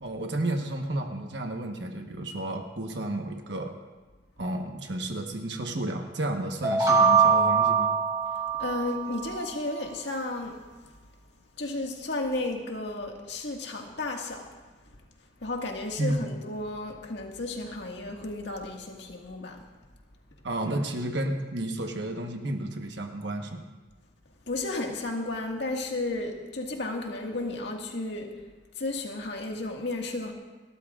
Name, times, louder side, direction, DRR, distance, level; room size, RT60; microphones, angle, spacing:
voice 1, 0.0-3.7 4.4-7.9 16.0-16.3 20.4-23.6, right 1 dB, 70° right, 3 dB, 1.2 m, -32 dB
sound 1, 6.6-9.4, right 6 dB, 15° right, 1.1 m, -23 dB
voice 2, 8.3-11.0 11.6-14.5 15.4-19.6 24.5-28.3 28.8-30.3, left 2 dB, 70° left, 1 dB, 1.9 m, -33 dB
30.0 x 12.5 x 2.5 m, 1.3 s
head